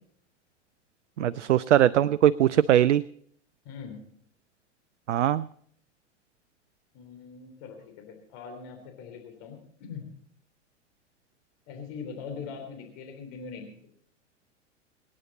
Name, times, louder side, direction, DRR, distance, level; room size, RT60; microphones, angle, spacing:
voice 1, 1.2-3.0 5.1-5.5, right 11 dB, 75° right, 17 dB, 0.5 m, -21 dB
voice 2, 3.6-4.0 6.9-10.1 11.7-13.7, left 6 dB, 50° left, 3 dB, 3.4 m, -42 dB
24.5 x 9.8 x 4.2 m, 0.62 s
figure-of-eight pair, 100°, 36 cm